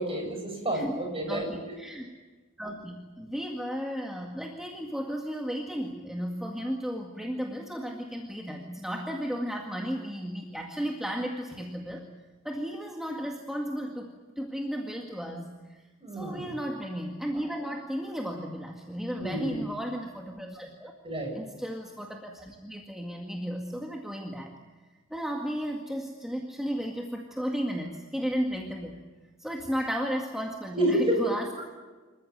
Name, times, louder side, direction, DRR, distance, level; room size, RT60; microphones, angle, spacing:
voice 1, 0.0-1.5 16.0-16.5 19.2-19.6 21.0-21.3 30.7-31.2, right 1 dB, 30° right, 2 dB, 7.8 m, -29 dB
voice 2, 1.3-2.1 2.6-12.1 12.4-15.8 16.1-20.9 21.3-24.5 25.1-29.1 29.4-31.6, equal, ahead, 1 dB, 2.0 m, -34 dB
28.0 x 14.5 x 9.5 m, 1.3 s
head